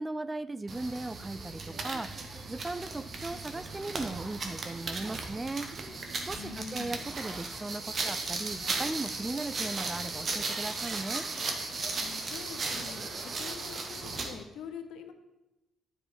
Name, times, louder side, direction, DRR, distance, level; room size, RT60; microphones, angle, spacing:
voice 1, 0.0-5.7 6.3-11.3, right 2 dB, 20° right, 15 dB, 0.3 m, -37 dB
sound 1, 0.7-14.4, right 3 dB, 45° right, 1.1 m, -36 dB
voice 2, 6.3-7.0 11.9-15.1, left 7 dB, 80° left, 7 dB, 0.8 m, -45 dB
9.5 x 4.9 x 4.8 m, 0.99 s
cardioid pair, 90°, 0 cm